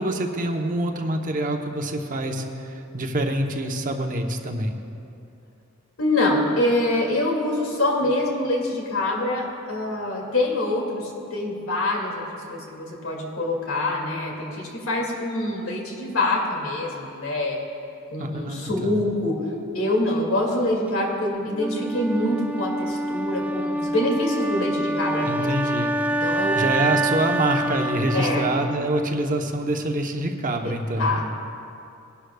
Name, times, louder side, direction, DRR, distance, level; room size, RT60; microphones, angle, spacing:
voice 1, 0.0-4.7 18.2-18.9 25.3-26.0 26.6-31.2, right 1 dB, 40° right, 4 dB, 0.8 m, -26 dB
voice 2, 6.0-12.2 12.5-17.6 18.1-19.3 19.7-25.5 26.2-26.5 28.1-28.5 31.0-31.2, left 1 dB, 80° left, -1 dB, 2.3 m, -25 dB
Wind instrument woodwind instrument, 21.6-29.6, right 1 dB, 10° right, 0.3 m, -26 dB
20.0 x 11.5 x 2.3 m, 2.7 s
head